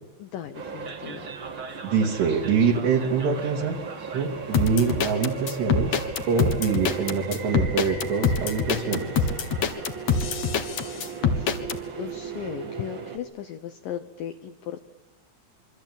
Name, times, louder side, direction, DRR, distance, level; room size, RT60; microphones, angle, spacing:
voice 1, 0.2-1.3 11.2-11.5 12.0-14.9, left 10 dB, 80° left, 8 dB, 2.0 m, -37 dB
sound 1, 0.5-13.2, right 5 dB, 45° right, 1.6 m, -36 dB
voice 2, 1.8-3.8 4.1-9.3, right 5 dB, 65° right, -3 dB, 4.4 m, -25 dB
sound 2, 4.5-11.8, left 6 dB, 55° left, 2.0 m, -24 dB
27.0 x 24.0 x 9.0 m, 1.1 s
omnidirectional pair, 5.4 m